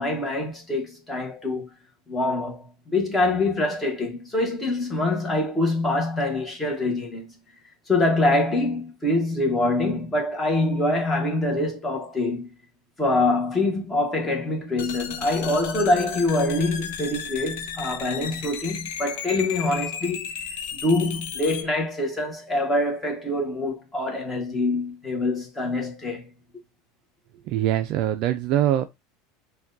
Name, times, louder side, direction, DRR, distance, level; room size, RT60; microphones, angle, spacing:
voice 1, 0.0-1.7 2.1-7.3 7.9-12.5 13.0-20.3 20.8-26.3, left 2 dB, 10° left, 1.0 m, -25 dB
sound 1, 14.8-21.6, left 8 dB, 80° left, 0.6 m, -34 dB
voice 2, 27.5-28.8, right 12 dB, 45° right, 0.3 m, -23 dB
5.8 x 2.3 x 2.5 m
supercardioid pair, 160°, 0 cm